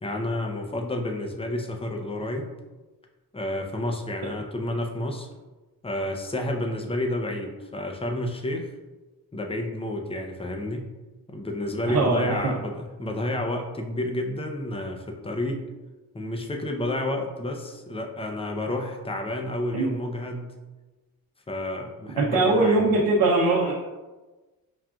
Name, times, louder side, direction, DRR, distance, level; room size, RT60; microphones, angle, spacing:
voice 1, 0.0-2.5 3.3-5.3 5.8-8.7 9.3-10.9 11.3-15.6 16.1-20.5 21.5-22.9, left 1 dB, 15° left, 2 dB, 0.6 m, -30 dB
voice 2, 11.8-12.5 19.7-19.9 22.1-23.7, right 2 dB, 70° right, -4 dB, 0.8 m, -21 dB
5.9 x 2.3 x 2.4 m, 1.2 s
cardioid pair, 70°, 37 cm